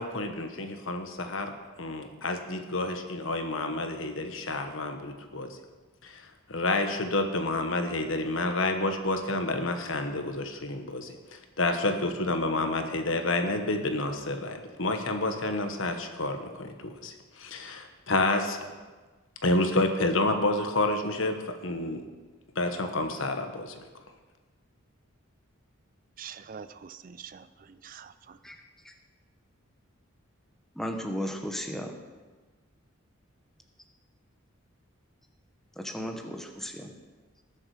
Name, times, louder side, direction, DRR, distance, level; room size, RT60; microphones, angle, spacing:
voice 1, 0.0-1.5 1.8-5.6 6.0-18.6 19.4-21.4 21.6-22.0 22.5-23.8, left 2 dB, 65° left, 6 dB, 1.3 m, -29 dB
voice 2, 26.2-28.4, right 7 dB, 40° right, 13 dB, 0.4 m, -45 dB
voice 3, 30.8-32.0 35.8-36.7, equal, ahead, 3 dB, 1.0 m, -34 dB
19.0 x 7.3 x 5.0 m, 1.3 s
head